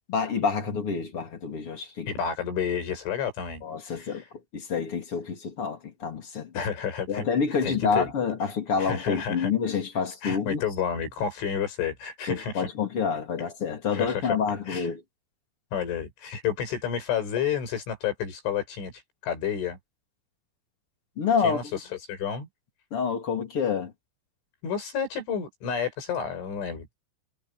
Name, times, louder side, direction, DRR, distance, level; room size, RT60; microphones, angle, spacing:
voice 1, 0.1-2.1 3.6-4.2 4.5-6.5 7.1-10.6 12.3-15.0 21.2-21.6 22.9-23.9, left 6 dB, 35° left, 3.4 m, -28 dB
voice 2, 2.1-4.3 6.5-7.2 7.6-8.1 8.4-8.5 8.8-9.5 10.2-12.7 13.9-14.4 14.7-14.9 15.7-19.8 21.4-22.5 24.6-27.0, left 7 dB, 80° left, 8.7 m, -30 dB
omnidirectional pair, 5.5 m